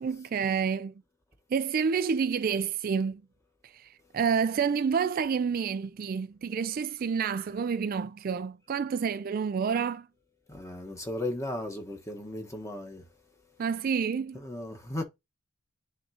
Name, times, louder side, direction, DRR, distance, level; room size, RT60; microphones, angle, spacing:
voice 1, 0.0-0.9 1.5-3.2 3.6-10.1 13.6-14.4, right 6 dB, 45° right, 0.3 m, -29 dB
voice 2, 10.5-13.0 14.4-15.0, left 1 dB, 15° left, 1.3 m, -36 dB
9.8 x 3.7 x 2.8 m
head